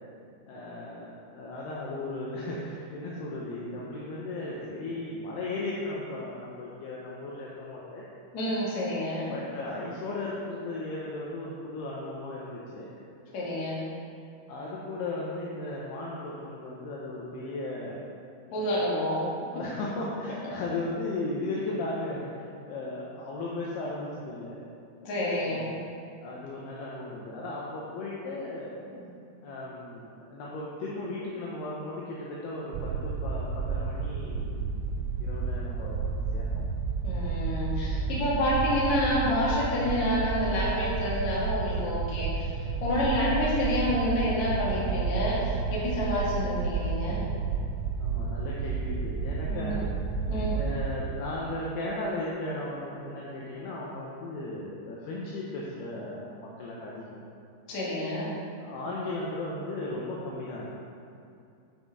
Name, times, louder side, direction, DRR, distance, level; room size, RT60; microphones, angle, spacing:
voice 1, 0.5-8.1 9.3-12.9 14.5-18.0 18.5-18.9 19.5-24.7 25.3-25.9 26.2-28.8 29.4-36.6 37.9-38.1 43.0-43.2 48.0-49.9 50.5-57.2 58.6-60.7, left 2 dB, 75° left, -5 dB, 2.7 m, -36 dB
voice 2, 8.3-9.3 13.3-13.8 18.5-19.3 25.0-25.6 28.8-29.0 37.0-42.5 42.8-47.3 49.4-49.8 50.3-50.6 57.7-58.3, left 1 dB, 50° left, -7 dB, 2.6 m, -28 dB
sound 1, 32.7-50.9, right 5 dB, 80° right, 2.7 m, -31 dB
9.2 x 6.0 x 4.8 m, 2.5 s
omnidirectional pair, 5.3 m